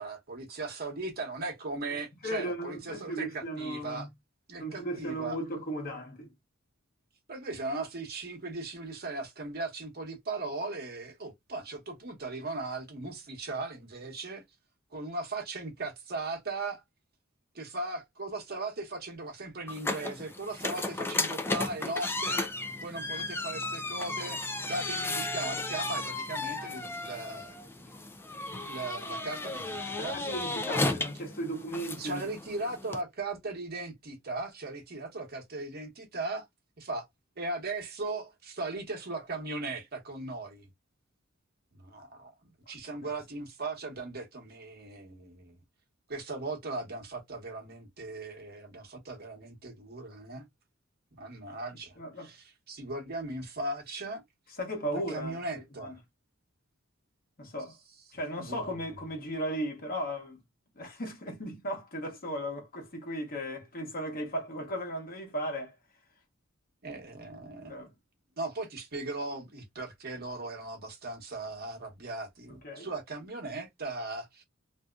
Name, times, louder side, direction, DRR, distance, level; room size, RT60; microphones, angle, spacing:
voice 1, 0.0-4.1 4.5-5.4 7.3-14.4 14.9-16.8 17.5-22.5 22.8-27.9 28.5-30.8 32.0-36.5 36.8-37.1 37.4-40.7 41.8-45.6 46.1-50.5 51.2-54.2 55.1-56.0 58.3-58.6 66.8-67.9 68.4-74.4, right 2 dB, 50° right, 1.1 m, -38 dB
voice 2, 2.2-4.1 4.6-6.3 30.0-32.3 51.5-51.6 52.0-52.3 54.6-56.0 57.4-57.7 58.1-60.4 60.8-65.7 67.7-67.9 72.6-72.9, equal, 45° left, 1.1 m, -36 dB
sound 1, 19.7-33.0, left 2 dB, 10° left, 0.4 m, -34 dB
3.5 x 2.7 x 2.3 m
head